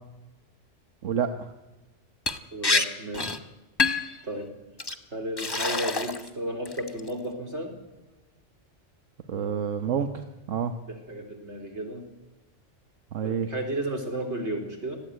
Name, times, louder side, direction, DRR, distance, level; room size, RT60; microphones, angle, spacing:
voice 1, 1.0-1.5 9.3-10.7 13.1-13.5, right 7 dB, 90° right, 7 dB, 1.4 m, -28 dB
Liquid, 2.3-2.4 2.6-2.8 3.1-3.4 3.8-4.1 4.8-4.9 5.4-6.3 6.6-7.1, left 3 dB, 20° left, 1.1 m, -26 dB
voice 2, 2.5-3.4 4.2-4.5 5.1-7.7 10.9-12.0 13.2-15.0, right 1 dB, 65° right, 4 dB, 4.1 m, -33 dB
19.5 x 14.5 x 10.0 m, 1.1 s
omnidirectional pair, 1.3 m